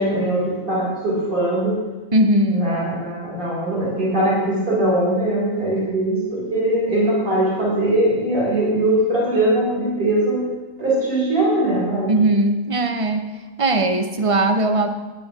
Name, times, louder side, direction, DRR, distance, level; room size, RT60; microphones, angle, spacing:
voice 1, 0.0-1.8 2.5-10.4 10.8-12.1, right 1 dB, 75° right, -6 dB, 4.9 m, -21 dB
voice 2, 2.1-2.7 12.1-13.3 13.6-14.9, right 1 dB, 30° right, 6 dB, 0.8 m, -19 dB
15.5 x 10.5 x 3.7 m, 1.2 s
omnidirectional pair, 1.5 m